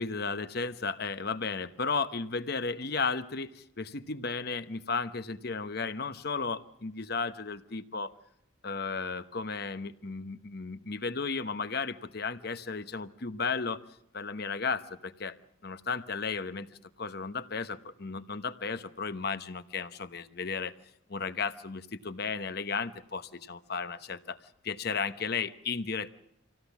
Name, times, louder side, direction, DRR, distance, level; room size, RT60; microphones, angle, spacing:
voice 1, 0.0-8.1 8.6-13.8 14.1-15.4 15.6-16.7 17.0-20.7 21.1-24.4 24.6-26.1, left 4 dB, 55° left, 11 dB, 1.0 m, -34 dB
26.5 x 17.0 x 7.2 m, 0.78 s
head